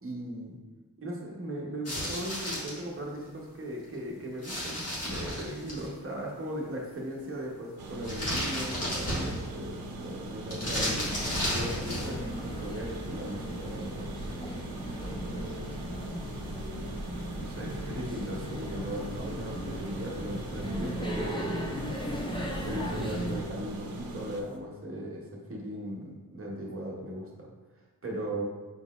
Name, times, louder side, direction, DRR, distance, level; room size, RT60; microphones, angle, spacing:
voice 1, 0.0-0.6 1.0-11.1 11.5-14.2 15.0-15.7 17.3-21.7 22.6-27.5 28.0-28.4, equal, 40° right, -2 dB, 0.9 m, -38 dB
sound 1, 1.8-2.8 4.4-5.9 8.0-9.6 10.5-12.2, equal, 45° left, 1.5 m, -33 dB
sound 2, 7.8-24.4, right 2 dB, 85° right, 0.6 m, -41 dB
sound 3, 10.6-23.6, equal, 15° left, 0.4 m, -37 dB
5.7 x 3.9 x 2.4 m, 1.2 s
wide cardioid pair, 180°, 35 cm